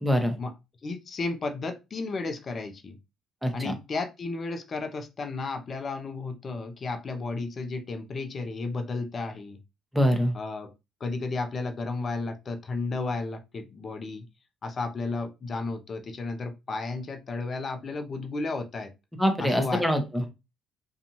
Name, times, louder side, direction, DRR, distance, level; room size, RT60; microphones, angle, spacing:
voice 1, 0.0-0.3 3.4-3.7 9.9-10.3 19.2-20.3, equal, 5° right, 4 dB, 0.9 m, -24 dB
voice 2, 0.8-3.0 3.5-9.6 10.3-10.7 11.0-14.3 14.6-18.9 19.4-19.9, left 3 dB, 45° left, 8 dB, 0.6 m, -33 dB
2.6 x 2.3 x 2.9 m, 0.25 s
hypercardioid pair, 55°, 0 cm